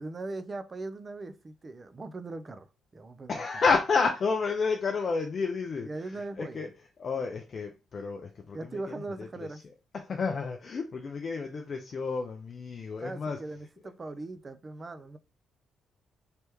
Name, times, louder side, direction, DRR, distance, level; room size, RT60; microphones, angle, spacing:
voice 1, 0.0-3.5 5.8-6.7 8.5-9.6 13.0-15.2, right 2 dB, 30° right, 0.5 m, -40 dB
voice 2, 3.3-5.9 6.4-6.7 7.0-8.6 9.2-9.3 10.1-13.4, left 4 dB, 45° left, 0.5 m, -30 dB
3.3 x 3.2 x 3.0 m
cardioid pair, 90°, 0 cm